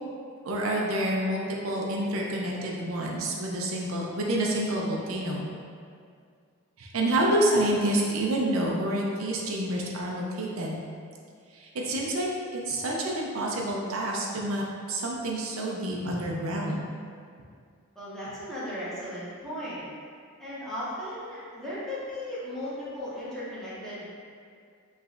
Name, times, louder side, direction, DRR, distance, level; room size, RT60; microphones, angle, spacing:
voice 1, 0.4-5.5 6.8-10.7 11.5-16.8, right 1 dB, 75° right, -2 dB, 0.5 m, -28 dB
voice 2, 17.9-19.9 20.4-24.0, left 1 dB, ahead, -11 dB, 1.1 m, -36 dB
4.8 x 3.2 x 2.5 m, 2.2 s
head